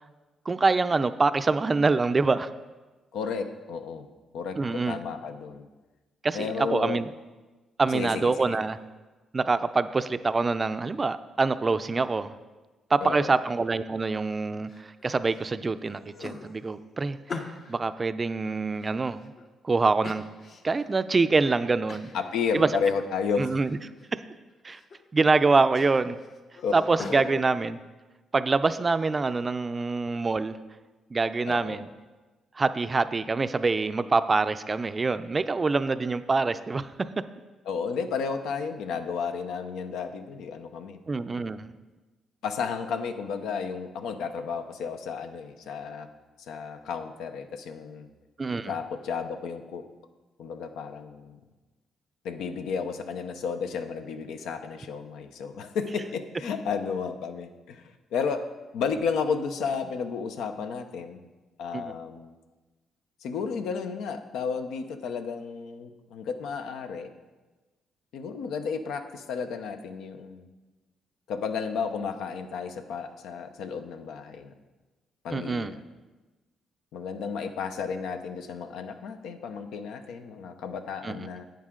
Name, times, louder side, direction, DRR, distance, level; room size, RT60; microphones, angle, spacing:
voice 1, 0.5-2.5 4.6-5.0 6.2-7.1 7.8-8.8 9.3-12.3 12.9-17.2 17.7-19.3 19.6-20.2 20.6-22.1 22.5-22.7 23.4-23.8 24.1-24.2 24.6-24.8 25.1-26.2 26.7-27.8 28.3-30.6 31.1-31.9 32.6-36.9 41.1-41.7 48.4-48.7 61.7-61.9 75.3-75.7 81.0-81.2, right 3 dB, 30° right, 12 dB, 0.4 m, -25 dB
voice 2, 3.1-4.1 4.3-5.7 6.3-7.0 7.9-8.6 13.0-13.3 22.1-23.5 26.6-26.7 27.1-27.4 31.5-31.8 37.7-41.0 42.4-46.1 46.4-48.1 48.7-49.9 50.4-51.4 52.2-61.2 61.6-62.3 63.2-67.1 68.1-70.5 71.3-74.5 75.2-75.8 76.9-81.4, left 5 dB, 85° left, 7 dB, 0.7 m, -32 dB
sound 1, 14.7-15.4 15.8-17.8 18.3-19.5 20.0-20.9 21.3-21.4 21.9-22.2 22.6-23.2 23.5-24.1 24.5-25.0 25.3-27.2, left 4 dB, 55° left, 1.0 m, -43 dB
10.5 x 8.5 x 3.8 m, 1.2 s
cardioid pair, 90°, 0 cm